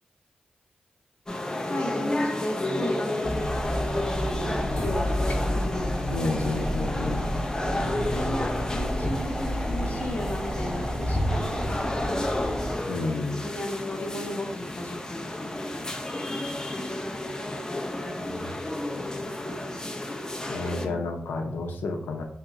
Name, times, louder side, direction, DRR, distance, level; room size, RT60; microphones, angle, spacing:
sound 1, 1.3-20.9, left 1 dB, 20° left, 0.6 m, -32 dB
voice 1, 1.7-3.8 4.5-5.4 6.2-6.6 7.7-12.4 13.4-16.0 16.7-16.9 20.8-21.0, left 1 dB, 45° left, 1 dB, 1.0 m, -34 dB
sound 2, 3.2-12.8, equal, 5° right, 1.1 m, -30 dB
voice 2, 6.1-7.2 12.9-13.4 18.3-18.5 20.5-22.2, left 3 dB, 90° left, 3 dB, 0.6 m, -30 dB
3.0 x 2.9 x 3.6 m, 0.70 s
cardioid pair, 50°, 3 cm